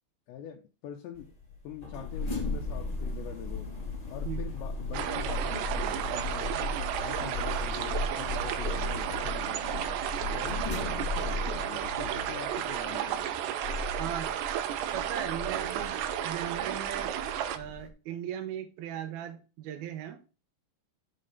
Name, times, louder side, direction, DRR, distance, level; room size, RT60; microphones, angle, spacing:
voice 1, 0.3-1.3 1.6-3.7 4.1-6.6 7.0-9.8 10.3-13.4, left 10 dB, 80° left, 3.0 m, -43 dB
sound 1, 1.1-17.9, left 2 dB, 40° left, 0.5 m, -37 dB
sound 2, 4.9-17.6, right 10 dB, 80° right, 2.7 m, -33 dB
voice 2, 14.0-14.3 14.9-17.1 17.5-20.2, right 10 dB, 65° right, 3.0 m, -38 dB
7.6 x 5.3 x 6.9 m
omnidirectional pair, 5.1 m